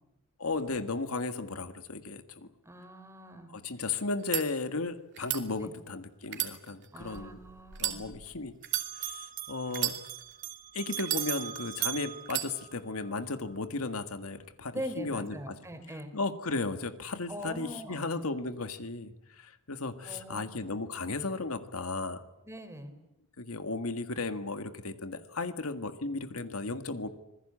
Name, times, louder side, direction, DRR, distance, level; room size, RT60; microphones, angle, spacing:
voice 1, 0.4-2.5 3.5-7.4 7.8-8.6 9.0-10.0 10.7-15.6 16.1-22.2 23.4-27.1, left 3 dB, 80° left, 9 dB, 1.8 m, -35 dB
voice 2, 2.7-3.5 5.6-5.7 6.9-8.1 9.7-9.8 14.7-16.1 17.3-18.1 20.0-20.5 22.4-22.9, equal, 15° right, 7 dB, 3.5 m, -42 dB
sound 1, 4.1-4.4 5.1-5.4 6.2-7.2 7.7-8.0 8.6-8.9 9.7-10.4 11.0-11.7 12.3-12.5, right 13 dB, 55° right, 2.9 m, -33 dB
Bell, 7.0-8.4 8.6-13.1, right 11 dB, 40° right, 1.4 m, -39 dB
26.5 x 20.5 x 8.7 m, 0.88 s
head